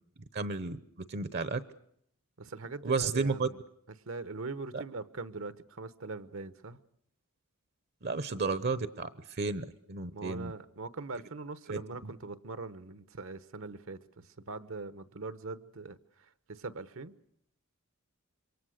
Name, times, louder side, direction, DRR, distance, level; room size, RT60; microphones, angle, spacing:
voice 1, 0.3-1.6 2.8-3.5 4.7-4.8 8.0-10.5 11.7-12.1, right 4 dB, 50° right, 0.9 m, -33 dB
voice 2, 2.4-3.6 4.1-6.8 10.1-17.1, right 3 dB, 65° right, 1.0 m, -42 dB
27.0 x 23.5 x 6.5 m
head